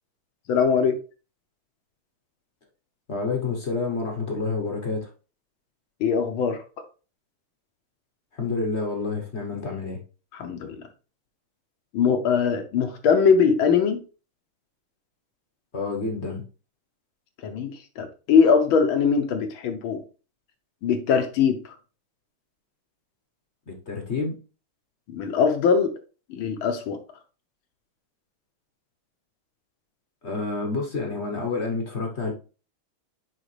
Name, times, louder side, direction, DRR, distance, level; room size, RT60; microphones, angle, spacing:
voice 1, 0.5-1.0 6.0-6.6 10.3-10.9 11.9-14.0 17.4-20.0 20.8-21.7 25.1-25.9 26.3-27.0, left 6 dB, 70° left, 1.6 m, -21 dB
voice 2, 3.1-5.1 8.3-10.0 15.7-16.4 23.7-24.4 30.2-32.3, left 3 dB, 40° left, 1.1 m, -28 dB
6.4 x 5.0 x 3.2 m
omnidirectional pair, 2.4 m